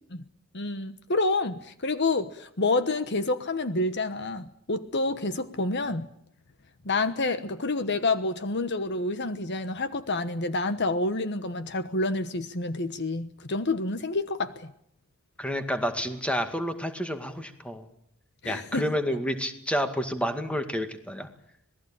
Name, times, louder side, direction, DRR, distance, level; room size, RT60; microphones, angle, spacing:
voice 1, 0.5-6.1 6.8-14.7 18.4-18.8, left 2 dB, 50° left, 11 dB, 1.2 m, -28 dB
voice 2, 15.4-17.9 18.5-21.3, equal, 5° left, 7 dB, 2.0 m, -29 dB
26.5 x 19.0 x 8.8 m, 0.71 s
head